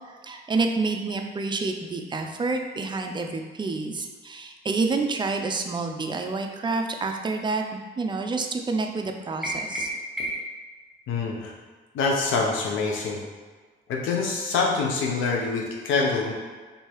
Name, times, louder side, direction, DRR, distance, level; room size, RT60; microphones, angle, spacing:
voice 1, 0.2-7.6 8.0-9.9, right 3 dB, 25° right, 4 dB, 0.4 m, -28 dB
sound 1, 9.4-10.6, equal, 5° right, 1.1 m, -31 dB
voice 2, 11.1-11.5 11.9-13.2 13.9-16.3, left 4 dB, 85° left, 0 dB, 0.8 m, -25 dB
3.1 x 2.7 x 4.5 m, 1.4 s
cardioid pair, 90°, 20 cm